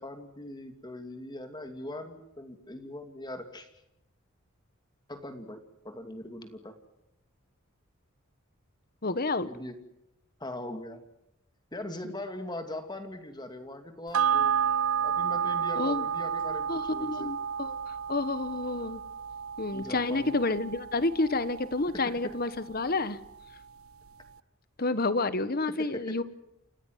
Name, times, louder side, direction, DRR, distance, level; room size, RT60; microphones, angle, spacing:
voice 1, 0.0-3.7 5.1-6.8 9.4-9.8 10.4-11.0 11.7-14.5 15.0-17.3 19.7-20.4 21.9-22.3 25.7-26.2, left 1 dB, 20° left, 7 dB, 2.5 m, -41 dB
voice 2, 9.0-9.5 12.0-12.1 15.8-16.1 16.7-19.0 19.6-23.2 24.8-26.2, left 3 dB, 45° left, 14 dB, 1.3 m, -29 dB
sound 1, 14.1-22.9 23.2-23.3, right 8 dB, 80° right, 0.8 m, -31 dB
29.0 x 16.0 x 9.4 m, 0.84 s
head